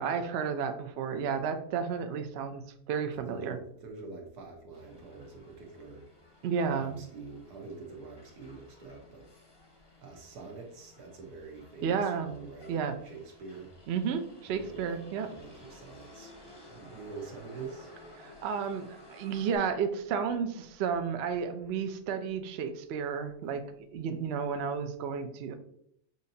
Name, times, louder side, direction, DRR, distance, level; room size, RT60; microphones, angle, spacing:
voice 1, 0.0-3.6 6.4-7.0 11.8-12.3 12.7-13.0 13.9-15.3 18.2-25.5, right 6 dB, 70° right, 8 dB, 0.6 m, -32 dB
voice 2, 3.1-6.0 6.6-9.3 10.0-12.8 13.0-13.7 14.5-16.3 16.7-17.9, right 4 dB, 90° right, 1 dB, 1.5 m, -45 dB
Motor vehicle (road), 4.7-19.6, left 1 dB, 25° left, 0.6 m, -55 dB
6.4 x 2.7 x 2.7 m, 0.69 s
omnidirectional pair, 1.6 m